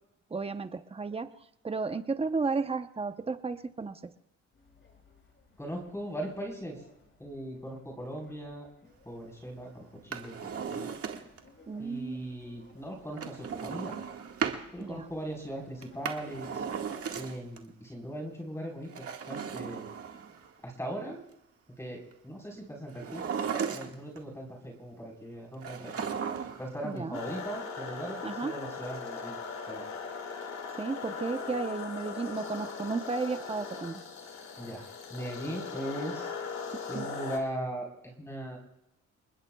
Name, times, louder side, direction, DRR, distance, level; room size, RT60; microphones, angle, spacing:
voice 1, 0.3-1.3 1.6-4.1 11.7-12.4 14.8-15.1 26.8-27.2 28.2-28.5 30.8-34.0 36.9-37.1, right 4 dB, 20° right, 9 dB, 0.9 m, -33 dB
sound 1, 4.5-17.4, left 3 dB, 40° left, 6.6 m, -60 dB
voice 2, 5.6-6.8 7.2-8.7 9.0-10.9 11.8-14.0 14.7-16.6 17.1-19.9 20.6-21.2 21.8-23.3 23.7-25.9 26.6-29.4 29.7-29.9 34.6-36.3 36.9-38.6, right 1 dB, 10° left, 0 dB, 4.4 m, -39 dB
Drawer open or close, 10.0-11.5 13.2-14.6 15.8-17.6 18.8-20.5 22.9-24.2 25.6-26.7 27.0-27.1, right 7 dB, 50° right, 1.8 m, -36 dB
sound 2, 27.1-37.4, left 5 dB, 65° left, 2.2 m, -39 dB
29.5 x 20.0 x 2.4 m, 0.84 s
cardioid pair, 90°, 30 cm